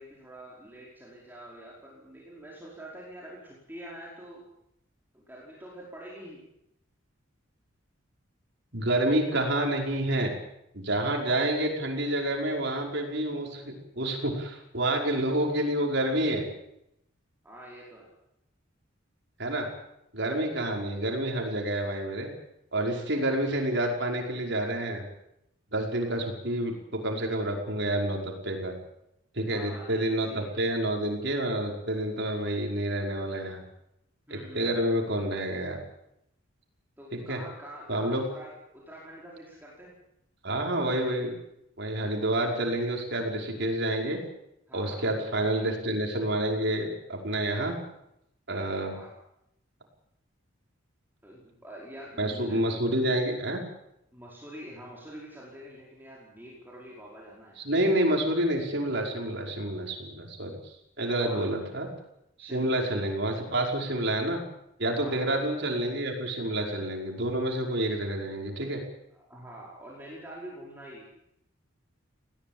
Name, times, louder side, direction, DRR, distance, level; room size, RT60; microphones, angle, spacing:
voice 1, 0.0-4.4 5.1-6.4 17.4-18.1 29.5-30.6 34.3-34.8 37.0-39.9 41.9-42.1 44.7-45.0 48.9-49.1 51.2-52.8 54.1-57.6 61.2-61.5 62.4-62.7 64.9-65.3 69.1-71.1, right 1 dB, 10° right, -5 dB, 5.1 m, -46 dB
voice 2, 8.7-10.3 10.7-16.4 19.4-19.7 20.1-22.3 22.7-25.0 25.7-28.7 29.3-33.6 34.3-35.8 37.1-37.4 37.9-38.2 40.4-41.3 41.8-44.2 44.7-47.8 48.5-48.9 52.2-53.6 57.6-61.9 62.4-64.4 64.8-68.8, right 1 dB, 55° right, 1 dB, 5.5 m, -28 dB
21.5 x 17.5 x 9.0 m, 0.80 s
head